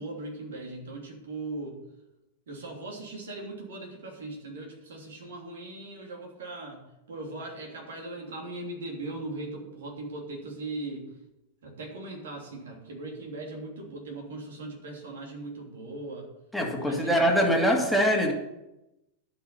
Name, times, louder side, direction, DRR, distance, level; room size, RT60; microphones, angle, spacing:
voice 1, 0.0-1.8 2.5-11.1 11.6-16.3 16.7-17.9, right 2 dB, 60° right, 0 dB, 3.1 m, -39 dB
voice 2, 16.5-18.3, equal, ahead, -1 dB, 2.4 m, -23 dB
11.5 x 5.9 x 6.8 m, 0.92 s
figure-of-eight pair, 90°, 0 cm